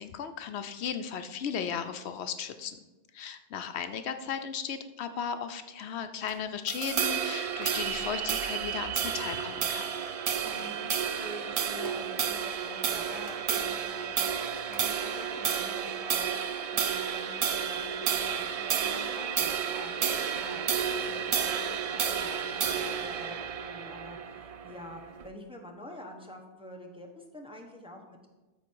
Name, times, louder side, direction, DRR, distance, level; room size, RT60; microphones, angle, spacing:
voice 1, 0.0-2.8 3.1-9.8, left 7 dB, 75° left, 8 dB, 0.8 m, -36 dB
sound 1, 6.1-15.9, right 1 dB, 40° right, 1.7 m, -56 dB
sound 2, 6.7-25.3, right 7 dB, 60° right, 0.4 m, -31 dB
sound 3, 7.7-13.0 13.4-13.5, right 10 dB, 75° right, 0.8 m, -41 dB
voice 2, 10.4-28.3, equal, 5° right, 1 dB, 1.0 m, -47 dB
13.5 x 4.5 x 4.6 m, 1.2 s
omnidirectional pair, 1.1 m